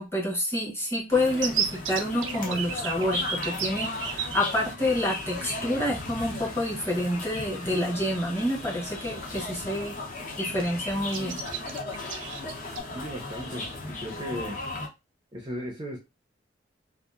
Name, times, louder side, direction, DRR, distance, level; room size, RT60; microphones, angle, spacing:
voice 1, 0.0-10.0 10.4-11.4, left 1 dB, 15° left, 1.0 m, -28 dB
sound 1, 1.1-14.9, left 3 dB, 45° left, 0.7 m, -36 dB
sound 2, 1.4-4.4 5.4-5.5 5.8-6.0 7.6-7.7 8.2-8.4 8.8-9.5 9.9-10.0 10.3-10.7 11.1-12.8, right 7 dB, 90° right, 0.5 m, -32 dB
voice 2, 12.9-14.6 15.3-16.0, equal, 25° right, 0.5 m, -36 dB
2.7 x 2.4 x 2.4 m
head